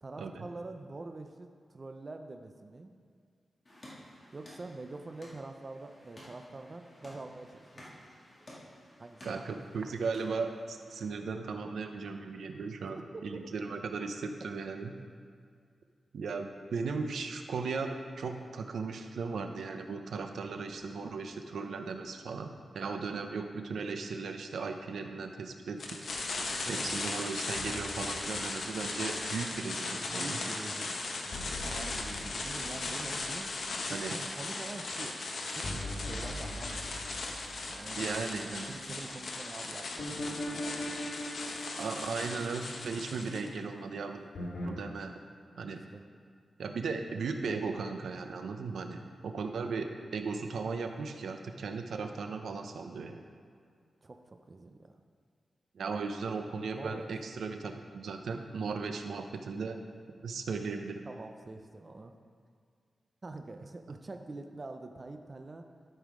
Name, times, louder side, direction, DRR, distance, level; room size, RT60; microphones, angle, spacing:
voice 1, 0.0-2.9 4.3-8.0 9.0-9.6 13.0-13.2 26.6-26.9 30.1-33.5 33.8-35.2 35.5-37.4 37.7-38.1 38.7-41.1 45.9-46.0 54.0-55.0 56.7-57.1 61.1-62.1 63.2-65.6, right 2 dB, 25° right, 5 dB, 0.4 m, -45 dB
sound 1, 3.6-11.0, equal, 25° left, 2.0 m, -54 dB
voice 2, 9.2-15.0 16.1-17.9 18.2-22.5 22.7-26.0 26.7-30.4 33.9-34.1 37.9-38.7 41.8-44.2 44.6-45.1 45.6-45.8 46.6-53.2 55.7-59.8 60.2-61.0, right 4 dB, 85° right, 5 dB, 0.7 m, -37 dB
sound 2, 25.8-43.5, left 3 dB, 55° left, 1.0 m, -38 dB
sound 3, 27.6-29.8 31.3-34.0 35.6-38.5 40.0-43.4 44.3-44.7, left 1 dB, 85° left, 2.2 m, -41 dB
12.5 x 5.5 x 4.8 m, 2.2 s
wide cardioid pair, 180°, 0 cm